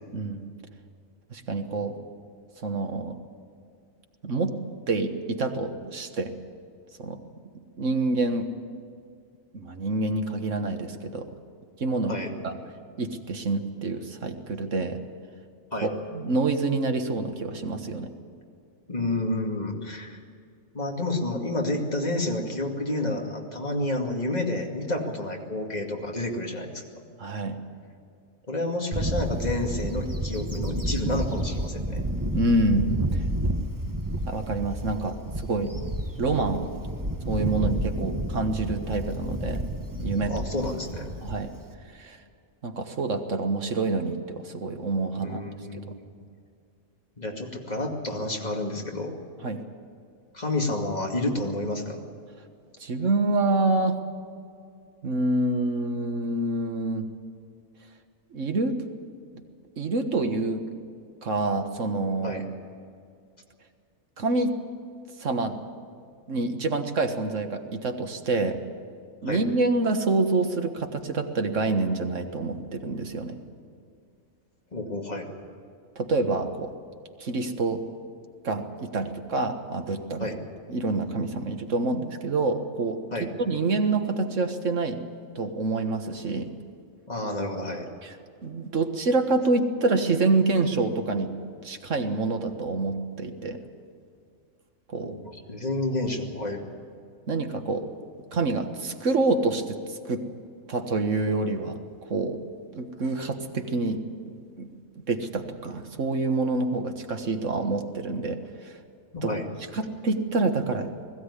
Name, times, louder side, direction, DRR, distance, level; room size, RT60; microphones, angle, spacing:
voice 1, 0.1-0.5 1.3-2.0 2.6-3.2 4.2-4.5 4.9-6.3 7.0-7.2 7.8-8.5 9.5-11.4 11.8-12.2 12.4-12.6 13.0-15.0 15.8-18.1 27.2-27.6 32.3-33.2 34.3-35.7 36.2-36.7 37.3-39.6 40.0-40.4 41.2-41.5 41.9-42.2 42.6-45.4 45.7-45.8 49.4-49.6 52.8-54.0 55.0-57.1 58.3-58.8 59.8-60.6 61.2-62.4 64.2-64.6 65.2-65.6 66.3-68.6 69.2-73.4 75.9-76.7 77.2-77.8 78.4-80.3 80.7-83.0 83.4-85.0 85.3-86.5 88.0-88.2 88.4-91.3 91.6-93.6 94.9-95.2 97.3-97.9 98.3-100.2 100.7-102.4 102.7-104.7 105.0-108.8 109.2-109.3 109.7-111.1, right 3 dB, 70° right, 6 dB, 1.8 m, -27 dB
voice 2, 18.9-20.2 20.7-27.0 28.5-32.0 40.3-41.1 45.2-46.0 47.2-49.1 50.3-52.0 62.2-62.4 69.3-69.4 74.7-75.3 80.2-80.4 83.1-83.3 87.1-87.9 95.0-96.6 109.1-109.5, left 2 dB, 30° left, 1 dB, 2.5 m, -30 dB
Bird / Wind, 28.9-41.7, right 1 dB, 15° right, 1.2 m, -30 dB
20.5 x 15.5 x 9.9 m, 2.4 s
omnidirectional pair, 1.3 m